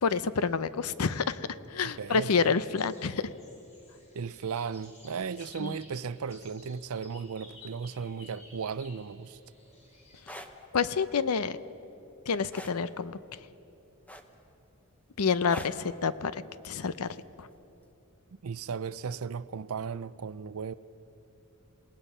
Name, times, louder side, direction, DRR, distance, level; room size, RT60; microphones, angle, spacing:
voice 1, 0.0-3.3 5.6-5.7 10.7-11.6 12.3-13.2 15.2-17.1 17.4-17.5, left 5 dB, 80° left, 0.6 m, -28 dB
voice 2, 1.8-2.6 4.1-9.4 18.4-20.7, right 6 dB, 70° right, 0.5 m, -36 dB
sound 1, 2.0-10.2, left 2 dB, 30° left, 4.2 m, -55 dB
sound 2, 10.1-10.5 12.5-12.8 14.1-14.5 15.5-15.8 17.2-17.4, left 1 dB, 5° left, 1.0 m, -42 dB
27.5 x 18.5 x 5.6 m
head